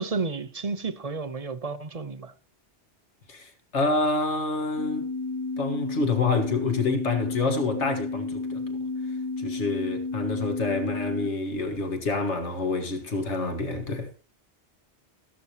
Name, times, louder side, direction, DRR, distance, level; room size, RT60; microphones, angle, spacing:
voice 1, 0.0-2.3, right 4 dB, 35° right, 1.0 m, -31 dB
voice 2, 3.3-5.1 5.6-8.8 9.4-14.1, left 3 dB, 85° left, 2.0 m, -27 dB
sound 1, 4.8-11.3, left 3 dB, 30° left, 0.7 m, -32 dB
14.0 x 12.5 x 2.9 m
omnidirectional pair, 1.2 m